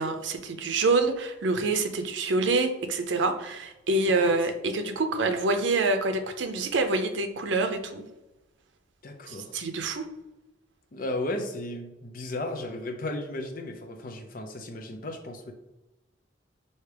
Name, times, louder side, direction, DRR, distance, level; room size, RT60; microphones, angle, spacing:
voice 1, 0.0-8.0 9.3-10.1, right 3 dB, 85° right, 6 dB, 0.5 m, -26 dB
voice 2, 9.0-9.6 10.9-15.5, left 1 dB, 50° left, 5 dB, 0.5 m, -35 dB
4.6 x 2.8 x 3.3 m, 1.0 s
head